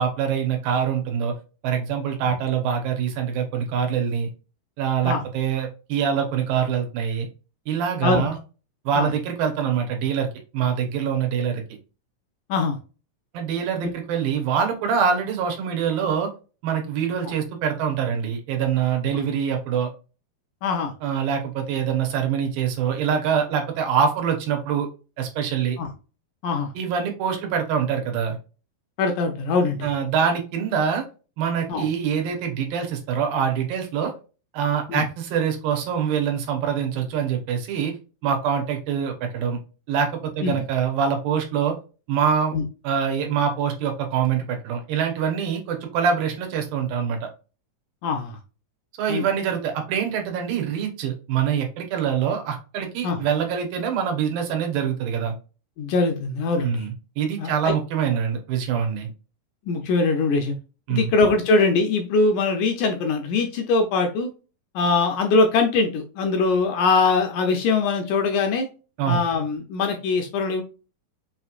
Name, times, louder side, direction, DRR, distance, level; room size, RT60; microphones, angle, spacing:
voice 1, 0.0-1.3 1.6-4.3 4.8-7.3 7.7-8.4 8.9-10.3 10.5-11.6 13.3-16.3 16.6-19.9 21.0-24.9 25.2-25.8 26.8-28.4 29.8-31.0 31.4-34.1 34.5-37.9 38.2-39.6 39.9-41.7 42.1-42.6 42.8-47.3 49.0-55.3 56.6-59.1 60.9-61.1 69.0-69.2, right 7 dB, 85° right, 4 dB, 2.8 m, -24 dB
voice 2, 20.6-20.9 25.8-25.9 26.4-26.7 29.0-29.9 31.7-31.9 34.9-35.0 40.4-40.6 42.5-42.6 48.0-48.4 49.1-49.2 53.0-53.2 55.8-56.9 57.4-57.7 59.7-60.5 60.9-64.3 64.8-68.7 69.1-70.6, left 4 dB, 80° left, 4 dB, 1.9 m, -22 dB
6.1 x 3.0 x 2.4 m, 0.33 s
omnidirectional pair, 4.0 m